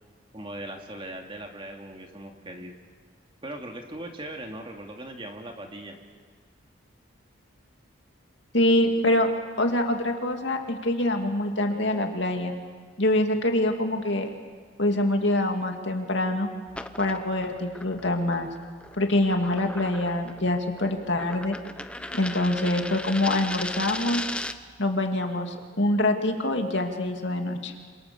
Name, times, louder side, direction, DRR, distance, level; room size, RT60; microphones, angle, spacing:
voice 1, 0.3-2.7 3.4-6.0, right 1 dB, 25° right, 3 dB, 2.3 m, -39 dB
voice 2, 8.5-9.3 9.6-12.5 13.0-14.3 14.8-16.5 17.0-18.5 19.0-21.6 22.1-24.2 24.8-27.7, left 1 dB, 60° left, 3 dB, 2.6 m, -25 dB
sound 1, 16.7-24.7, left 1 dB, 5° left, 0.7 m, -37 dB
28.0 x 26.0 x 7.1 m, 1.5 s
head